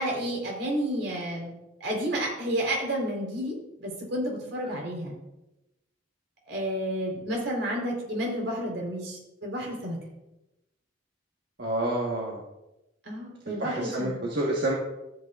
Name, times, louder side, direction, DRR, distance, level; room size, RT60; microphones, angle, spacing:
voice 1, 0.0-1.5 1.8-5.1 6.5-10.0 13.0-14.2, equal, 80° right, -1 dB, 4.0 m, -31 dB
voice 2, 11.6-12.4 13.5-14.8, right 1 dB, 60° right, -4 dB, 1.5 m, -28 dB
15.0 x 8.5 x 2.5 m, 0.95 s
head